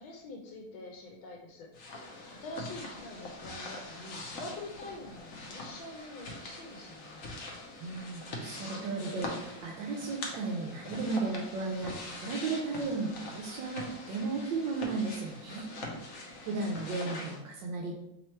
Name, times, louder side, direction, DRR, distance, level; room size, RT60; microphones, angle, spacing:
voice 1, 0.0-2.0 2.4-7.3 16.3-16.8, left 2 dB, 90° left, 0 dB, 1.4 m, -46 dB
sound 1, 1.7-17.4, left 2 dB, 60° left, 0.9 m, -43 dB
voice 2, 7.8-15.7 16.5-18.0, right 3 dB, 75° right, 0 dB, 1.2 m, -35 dB
3.4 x 3.0 x 4.2 m, 0.83 s
omnidirectional pair, 2.1 m